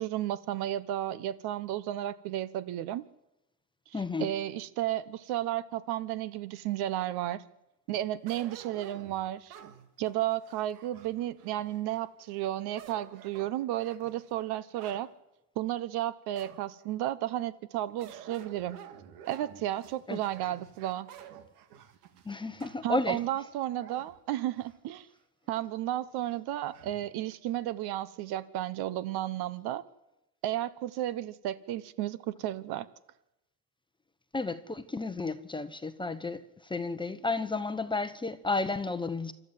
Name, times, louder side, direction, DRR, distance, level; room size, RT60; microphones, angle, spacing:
voice 1, 0.0-3.0 4.2-7.4 7.9-9.6 10.0-15.1 15.6-18.8 19.3-21.1 22.8-25.1 25.5-29.8 30.4-32.9, right 13 dB, 55° right, 1.2 m, -33 dB
voice 2, 3.9-4.3 20.1-20.2 22.2-23.2 34.3-39.3, left 3 dB, 10° left, 1.0 m, -32 dB
sound 1, 8.3-12.1 12.6-15.1 15.6-15.7 16.3-16.9 18.0-25.0 25.5-25.6 26.7-27.0, right 9 dB, 80° right, 2.1 m, -51 dB
27.0 x 13.0 x 7.5 m
supercardioid pair, 100°, 46 cm